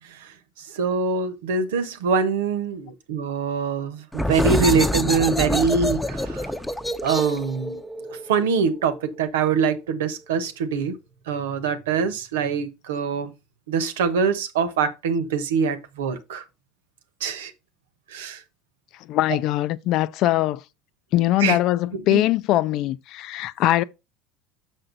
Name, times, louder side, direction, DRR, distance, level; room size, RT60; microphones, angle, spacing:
voice 1, 0.7-6.5 7.0-7.8 8.3-11.0 11.3-13.3 13.7-16.4 17.2-17.5 18.1-18.4 21.4-21.6 21.9-22.3, right 5 dB, 85° right, 1.2 m, -24 dB
sound 1, 4.1-9.5, equal, 5° left, 0.9 m, -27 dB
voice 2, 19.1-20.6 21.1-23.8, left 14 dB, 60° left, 0.6 m, -21 dB
6.6 x 6.2 x 3.9 m
hypercardioid pair, 85°, 0 cm